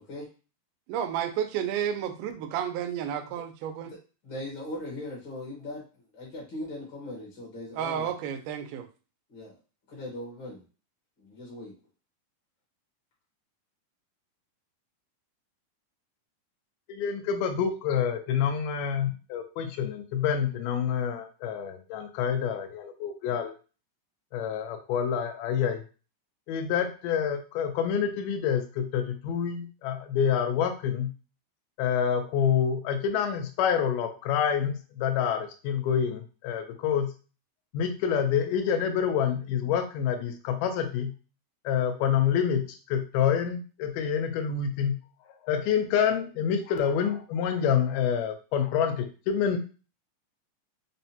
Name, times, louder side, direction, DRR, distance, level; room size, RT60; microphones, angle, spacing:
voice 1, 0.9-3.9 7.8-8.9, right 9 dB, 90° right, 7 dB, 2.1 m, -31 dB
voice 2, 4.2-5.8 6.1-8.1 9.3-9.6 9.9-10.6 11.2-11.7, left 1 dB, 55° left, -4 dB, 1.3 m, -39 dB
voice 3, 16.9-23.5 24.3-25.8 26.5-31.1 31.8-37.1 37.7-41.1 41.7-45.0 45.4-49.6, left 8 dB, 85° left, 5 dB, 2.2 m, -27 dB
5.4 x 2.1 x 2.7 m, 0.34 s
omnidirectional pair, 3.6 m